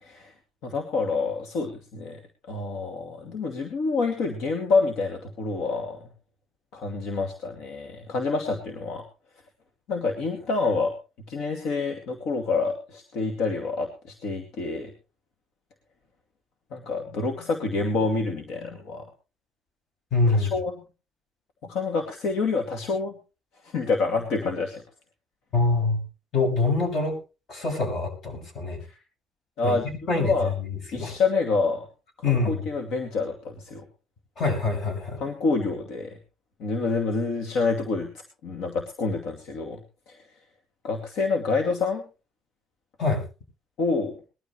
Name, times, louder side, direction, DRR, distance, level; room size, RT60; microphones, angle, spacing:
voice 1, 0.6-2.2 2.5-6.1 6.7-9.0 9.9-10.9 11.3-14.9 16.7-19.0 20.3-20.7 21.6-23.1 23.6-24.8 29.6-29.8 30.1-30.5 30.9-31.9 32.3-33.8 35.2-36.2 36.6-38.1 38.4-39.8 40.1-40.2 40.8-42.0 43.8-44.1, left 4 dB, 80° left, 4 dB, 2.4 m, -27 dB
voice 2, 20.1-20.5 25.5-26.0 26.3-27.2 27.5-28.8 29.6-29.8 30.1-31.1 32.2-32.7 34.4-35.2 43.0-43.2, left 3 dB, 55° left, 4 dB, 7.4 m, -25 dB
21.0 x 12.5 x 3.2 m, 0.32 s
cardioid pair, 100°, 0 cm